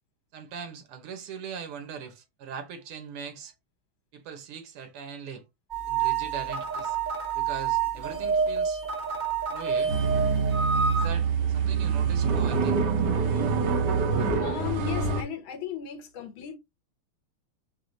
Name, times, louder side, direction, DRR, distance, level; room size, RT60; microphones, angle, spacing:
voice 1, 0.3-3.5 4.1-5.4 5.9-7.0 7.3-8.8 9.5-10.0 10.9-12.9, right 7 dB, 85° right, 1.9 m, -40 dB
sound 1, 5.7-11.1, right 6 dB, 30° right, 0.9 m, -28 dB
sound 2, 9.9-15.2, right 5 dB, 60° right, 1.3 m, -25 dB
voice 2, 14.4-16.6, left 9 dB, 70° left, 1.6 m, -36 dB
4.8 x 2.1 x 3.9 m
omnidirectional pair, 2.4 m